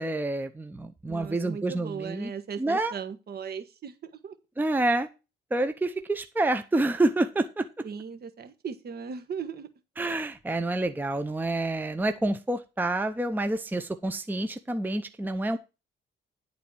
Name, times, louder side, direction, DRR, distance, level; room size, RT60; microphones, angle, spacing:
voice 1, 0.0-2.3 2.6-2.9 4.6-5.1 5.5-7.7 10.0-15.6, right 2 dB, 10° right, 8 dB, 0.7 m, -28 dB
voice 2, 1.1-4.3 7.8-9.7, right 6 dB, 50° right, 7 dB, 1.4 m, -37 dB
10.5 x 4.1 x 6.2 m, 0.29 s
cardioid pair, 90°, 20 cm